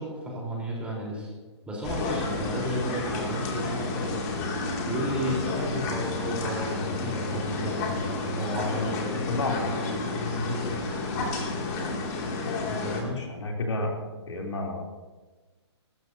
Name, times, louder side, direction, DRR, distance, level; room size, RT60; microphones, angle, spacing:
voice 1, 0.0-1.3 1.7-4.2 4.8-8.0 8.4-9.1 10.4-11.0 12.6-13.2, equal, 10° right, -4 dB, 4.2 m, -33 dB
sound 1, 1.8-13.0, left 2 dB, 35° left, 2.8 m, -30 dB
voice 2, 9.1-9.8 11.1-11.2 13.0-13.9 14.3-14.8, left 2 dB, 80° left, 0 dB, 3.4 m, -31 dB
22.5 x 13.5 x 2.9 m, 1.2 s
hypercardioid pair, 150°, 15 cm